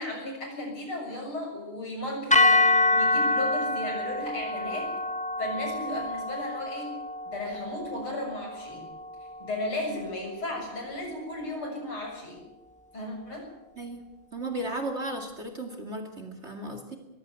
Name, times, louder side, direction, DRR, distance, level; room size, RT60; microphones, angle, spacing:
voice 1, 0.0-2.6 2.9-4.9 5.4-6.9 7.3-8.9 9.4-12.4 12.9-13.5, left 1 dB, 70° left, 1 dB, 7.8 m, -35 dB
sound 1, 2.3-10.6, left 2 dB, 5° left, 0.8 m, -27 dB
voice 2, 13.8-17.0, right 1 dB, 30° right, 4 dB, 2.5 m, -35 dB
22.0 x 15.5 x 9.4 m, 0.96 s
omnidirectional pair, 2.4 m